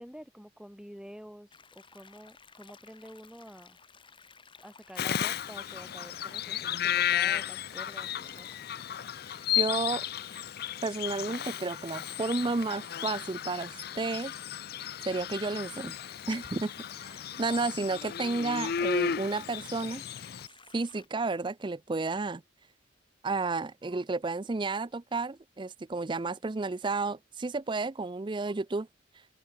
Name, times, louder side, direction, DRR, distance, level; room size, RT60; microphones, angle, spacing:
voice 1, 0.0-3.8 4.6-8.5, equal, 5° right, 2.7 m, -48 dB
sound 1, 1.5-21.1, left 5 dB, 25° left, 4.2 m, -56 dB
Bird vocalization bird call bird song, 5.0-20.5, left 9 dB, 55° left, 0.5 m, -34 dB
voice 2, 9.6-10.0 10.8-14.3 15.1-15.9 16.3-16.7 17.0-17.1 17.4-20.0 20.7-22.4 23.2-28.9, right 3 dB, 25° right, 0.5 m, -32 dB
head